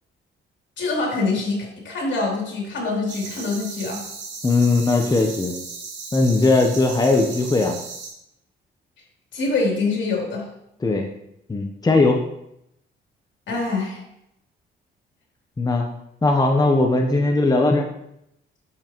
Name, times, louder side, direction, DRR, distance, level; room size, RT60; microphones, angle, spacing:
voice 1, 0.8-4.0 9.3-10.5 13.5-14.0, left 3 dB, 70° left, -2 dB, 3.0 m, -25 dB
sound 1, 3.1-8.1, right 4 dB, 65° right, 2.5 m, -36 dB
voice 2, 4.4-5.6 6.1-7.8 10.8-11.1 11.5-12.2 15.6-15.9 16.2-17.9, left 2 dB, 20° left, 3 dB, 0.8 m, -19 dB
8.5 x 7.0 x 3.0 m, 0.81 s
cardioid pair, 90°, 20 cm